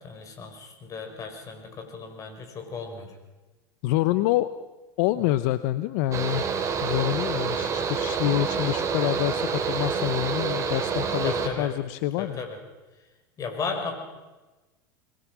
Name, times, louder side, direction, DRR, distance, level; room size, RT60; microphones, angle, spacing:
voice 1, 0.0-3.1 11.2-11.7 12.2-12.6 13.4-13.9, left 5 dB, 30° left, 5 dB, 5.4 m, -35 dB
voice 2, 3.8-4.5 5.0-6.5 6.8-12.4, left 14 dB, 65° left, 14 dB, 0.9 m, -26 dB
Mechanical fan, 6.1-11.5, right 6 dB, 30° right, 3.8 m, -28 dB
26.0 x 21.0 x 6.2 m, 1.2 s
supercardioid pair, 120°, 11 cm